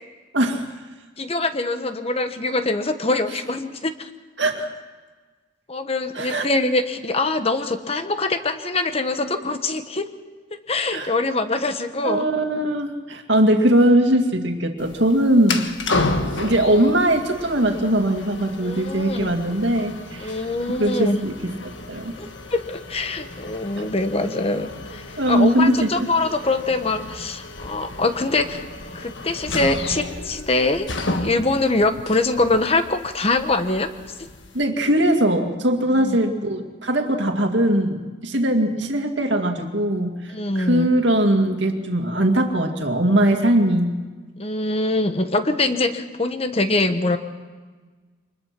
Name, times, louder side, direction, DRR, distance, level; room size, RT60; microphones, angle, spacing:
voice 1, 0.3-0.7 4.4-4.7 6.1-6.5 10.9-11.1 12.0-15.7 16.2-20.4 20.8-22.1 25.2-26.1 34.5-43.9, right 1 dB, 65° right, 4 dB, 2.3 m, -20 dB
voice 2, 1.2-4.1 5.7-10.1 10.7-12.3 18.6-19.3 20.2-21.2 22.2-28.7 28.9-30.9 31.2-33.9 34.2-34.3 35.9-36.2 40.3-40.9 44.4-47.2, left 2 dB, 30° left, 9 dB, 1.2 m, -23 dB
sound 1, 14.8-34.6, left 2 dB, 65° left, 1.6 m, -32 dB
24.5 x 20.5 x 6.0 m, 1.4 s
head